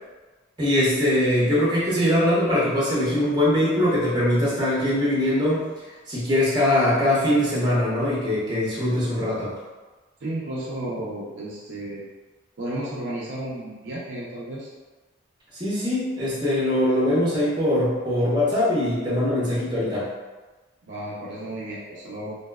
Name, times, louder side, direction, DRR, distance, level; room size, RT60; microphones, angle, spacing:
voice 1, 0.6-9.5 15.5-20.1, left 1 dB, 25° right, -8 dB, 0.8 m, -22 dB
voice 2, 10.2-12.0 12.6-14.7 20.9-22.4, right 1 dB, 65° right, -6 dB, 0.4 m, -33 dB
2.6 x 2.1 x 2.2 m, 1.2 s
head